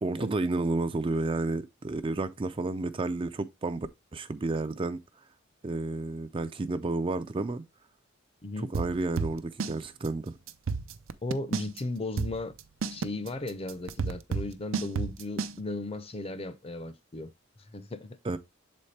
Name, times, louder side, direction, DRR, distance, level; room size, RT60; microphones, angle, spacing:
voice 1, 0.0-5.0 5.6-7.6 8.7-10.4 18.2-18.4, right 2 dB, 25° right, 0.4 m, -31 dB
sound 1, 8.7-9.8 10.0-10.1 10.5-11.8 12.2-15.5, right 5 dB, 75° right, 0.5 m, -31 dB
voice 2, 11.2-12.5 12.9-17.3 17.7-18.2, left 2 dB, 30° left, 0.6 m, -36 dB
7.2 x 4.2 x 3.2 m
head